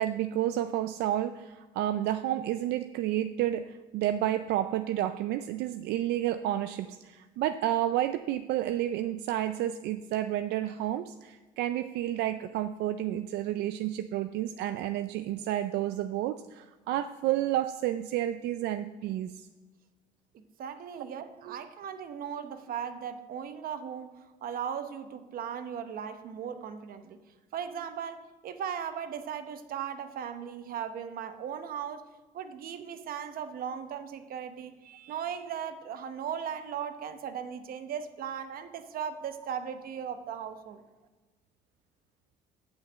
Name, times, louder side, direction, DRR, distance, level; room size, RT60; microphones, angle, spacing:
voice 1, 0.0-19.5 21.5-21.6, right 12 dB, 80° right, 10 dB, 0.4 m, -30 dB
voice 2, 20.3-27.2 27.5-32.1 32.3-40.8, right 8 dB, 60° right, 9 dB, 0.9 m, -37 dB
8.8 x 5.7 x 8.0 m, 1.2 s
cardioid pair, 110°, 17 cm